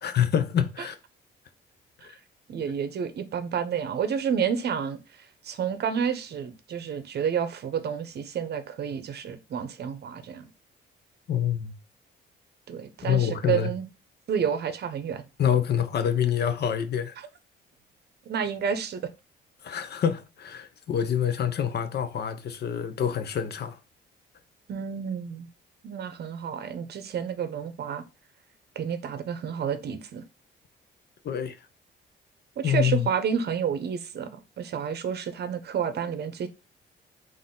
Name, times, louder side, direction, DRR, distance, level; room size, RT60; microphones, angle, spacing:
voice 1, 0.0-1.0 2.0-2.1 11.3-11.7 13.0-13.7 15.4-17.2 19.6-23.8 31.2-31.6 32.6-33.1, left 9 dB, 55° left, 0.6 m, -26 dB
voice 2, 2.5-10.5 12.7-13.9 14.3-15.3 17.2-17.3 18.3-19.0 24.7-25.5 25.8-28.0 28.8-30.2 32.6-36.5, right 7 dB, 55° right, 0.7 m, -30 dB
4.0 x 2.5 x 3.7 m
cardioid pair, 90°, 20 cm